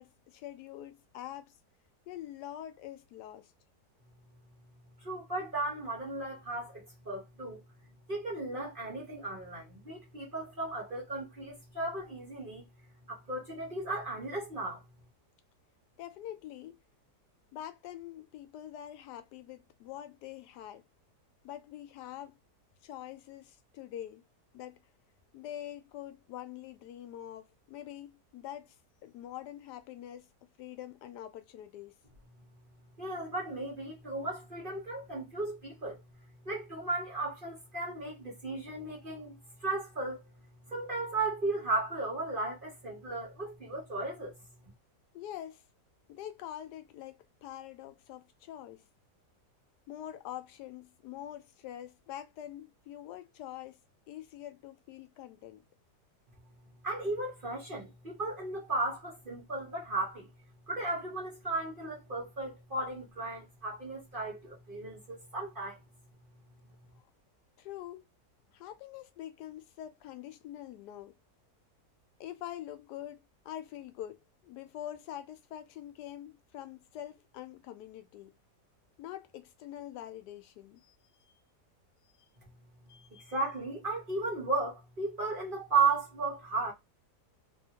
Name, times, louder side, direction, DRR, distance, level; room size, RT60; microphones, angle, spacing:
voice 1, 0.0-1.5 2.1-3.5 16.0-16.7 17.5-20.8 21.4-22.4 22.8-24.2 24.5-24.8 25.3-28.7 29.0-30.3 30.6-31.9 45.1-45.6 46.1-47.1 47.4-48.8 49.9-53.8 54.1-55.6 67.6-68.0 68.5-71.1 72.2-73.2 73.4-74.2 74.4-78.3 79.0-80.9 82.9-83.3, left 12 dB, 80° left, 1.1 m, -45 dB
voice 2, 5.0-7.6 8.1-12.6 13.1-14.8 33.0-36.0 36.4-40.2 40.7-44.3 56.8-60.3 60.7-65.8 83.1-86.7, right 3 dB, 35° right, 1.0 m, -35 dB
2.7 x 2.6 x 2.8 m
omnidirectional pair, 1.8 m